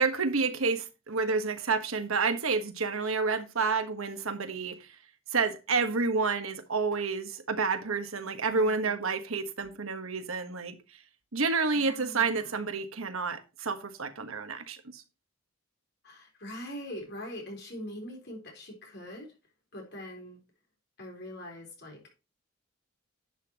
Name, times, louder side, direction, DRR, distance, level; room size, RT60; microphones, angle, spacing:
voice 1, 0.0-4.9 5.3-10.8 11.3-15.0, right 4 dB, 85° right, 1.4 m, -29 dB
voice 2, 8.5-8.9 11.7-12.6 16.0-19.3 19.7-20.4 21.0-22.0, left 1 dB, 50° left, 4.0 m, -42 dB
11.0 x 8.1 x 2.9 m
head